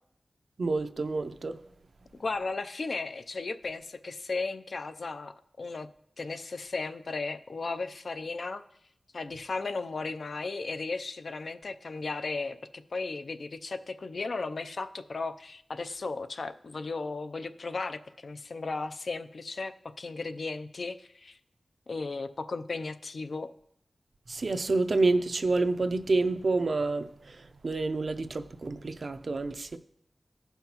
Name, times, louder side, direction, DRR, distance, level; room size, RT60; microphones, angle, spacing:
voice 1, 0.6-1.6 24.3-29.8, right 3 dB, 65° right, 0.5 m, -28 dB
voice 2, 2.2-5.9 6.2-8.6 9.1-21.4 21.9-23.5, left 3 dB, 70° left, 0.4 m, -35 dB
15.5 x 5.7 x 2.9 m
wide cardioid pair, 70°, 0 cm